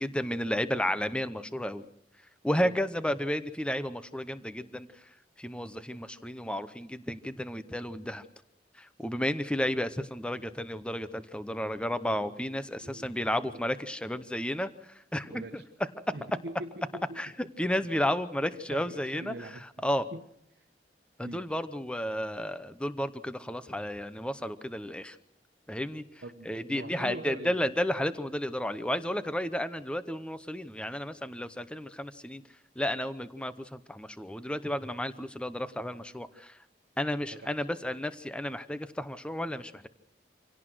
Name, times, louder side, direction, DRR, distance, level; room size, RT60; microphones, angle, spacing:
voice 1, 0.0-1.9 2.4-4.9 5.4-8.2 8.8-15.6 17.2-17.3 17.6-19.3 19.8-20.1 21.2-25.2 25.7-26.0 26.5-32.4 32.8-36.6 37.0-39.9, equal, 5° left, 12 dB, 0.8 m, -32 dB
voice 2, 12.2-12.6 12.8-13.7 15.2-15.7 16.1-17.5 18.0-18.2 18.5-19.6 20.1-20.2 20.5-20.6 21.2-21.5 26.2-27.6 37.3-37.5, right 1 dB, 80° right, 3 dB, 1.1 m, -44 dB
26.5 x 17.5 x 6.3 m, 0.79 s
head